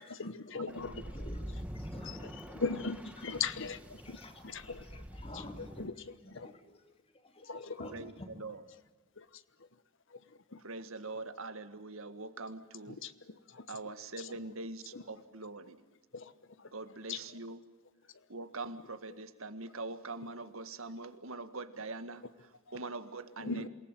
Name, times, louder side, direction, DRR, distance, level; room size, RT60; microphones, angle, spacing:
voice 1, 0.0-1.3 2.0-5.1 5.3-6.5 7.4-7.9 8.7-8.8 9.2-9.8 10.1-11.2 12.6-14.6 14.9-15.2 16.1-17.4 18.0-18.3 19.1-19.2 19.7-19.8 22.2-22.8 23.4-23.7, left 4 dB, 60° left, 14 dB, 1.1 m, -42 dB
sound 1, 0.7-5.9, equal, 5° right, 1.8 m, -45 dB
voice 2, 1.1-2.6 4.0-5.7 6.2-6.8 7.1-7.5 7.8-8.3, left 1 dB, 25° left, 6 dB, 2.8 m, -51 dB
voice 3, 10.6-13.0 13.7-15.8 16.7-17.6 18.3-22.2 22.7-23.5, right 3 dB, 70° right, 10 dB, 1.8 m, -43 dB
28.0 x 19.0 x 9.1 m, 1.2 s
head